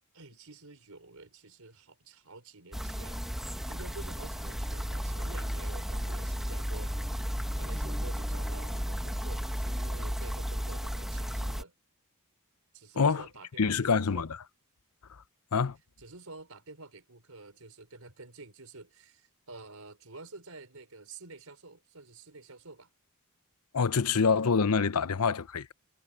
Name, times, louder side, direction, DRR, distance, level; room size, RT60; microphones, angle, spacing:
voice 1, 0.1-11.7 12.7-14.2 16.0-22.9, right 3 dB, 70° right, 5.1 m, -49 dB
sound 1, 2.7-11.6, equal, ahead, 1.0 m, -34 dB
voice 2, 13.6-14.4 15.5-15.8 23.7-25.7, left 5 dB, 80° left, 0.7 m, -26 dB
head